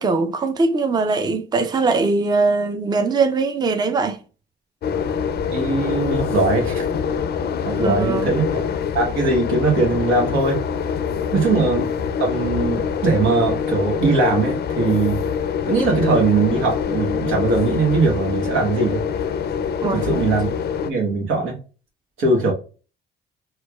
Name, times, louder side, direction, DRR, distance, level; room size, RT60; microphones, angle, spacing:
voice 1, 0.0-4.2 7.7-8.3 11.1-11.4 19.8-20.0, right 3 dB, 20° right, 0.5 m, -21 dB
sound 1, 4.8-20.9, left 7 dB, 55° left, 0.4 m, -24 dB
voice 2, 5.5-6.9 7.7-8.6 8.9-10.6 11.3-11.8 12.2-15.2 15.7-19.0 19.9-20.5 20.8-21.6 22.2-22.5, right 3 dB, 90° right, 1.2 m, -20 dB
4.5 x 2.4 x 2.3 m
cardioid pair, 90°, 20 cm